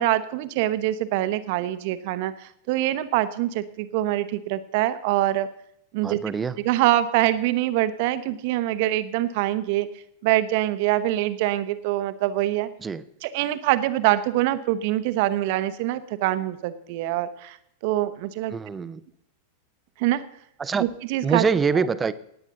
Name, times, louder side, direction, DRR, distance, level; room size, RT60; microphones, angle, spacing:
voice 1, 0.0-5.5 5.9-6.2 6.6-9.9 10.2-12.7 13.2-17.6 17.8-18.5 20.0-20.2 20.8-21.5 21.7-21.9, right 14 dB, 50° right, 13 dB, 0.8 m, -24 dB
voice 2, 6.0-6.5 12.8-13.0 18.5-19.0 20.6-20.8 21.2-22.1, right 5 dB, 15° right, 15 dB, 0.5 m, -24 dB
18.0 x 9.1 x 4.0 m, 0.73 s
figure-of-eight pair, 90°, 0 cm